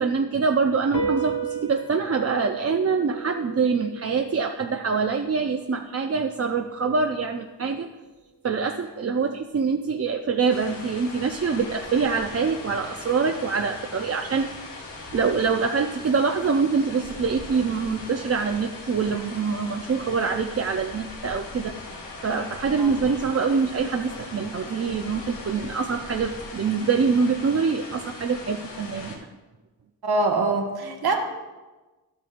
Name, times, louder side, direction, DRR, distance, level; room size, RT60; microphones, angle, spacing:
voice 1, 0.0-7.9 8.4-14.5 15.1-29.2, right 5 dB, 35° right, 4 dB, 0.6 m, -25 dB
sound 1, 0.9-7.7, right 5 dB, 50° left, 1.4 m, -36 dB
sound 2, 10.5-29.2, left 2 dB, 85° left, 2.9 m, -40 dB
voice 2, 30.0-31.2, right 3 dB, 60° right, 2 dB, 1.6 m, -24 dB
12.0 x 8.8 x 2.6 m, 1.2 s
cardioid pair, 55°, 42 cm